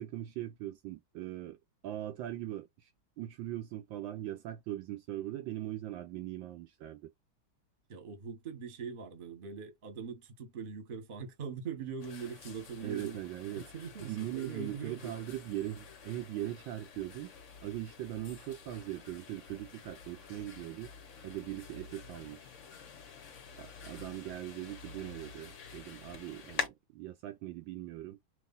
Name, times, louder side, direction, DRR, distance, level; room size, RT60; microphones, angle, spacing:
voice 1, 0.0-1.6 1.8-2.9 3.2-7.1 12.8-13.7 14.0-17.3 17.6-20.9 21.2-22.5 23.6-28.2, right 13 dB, 75° right, 1.3 m, -40 dB
voice 2, 7.9-13.2 13.7-15.1, right 6 dB, 35° right, 1.0 m, -42 dB
sound 1, 12.0-26.7, left 6 dB, 50° left, 0.9 m, -47 dB
3.1 x 3.0 x 3.8 m
omnidirectional pair, 2.3 m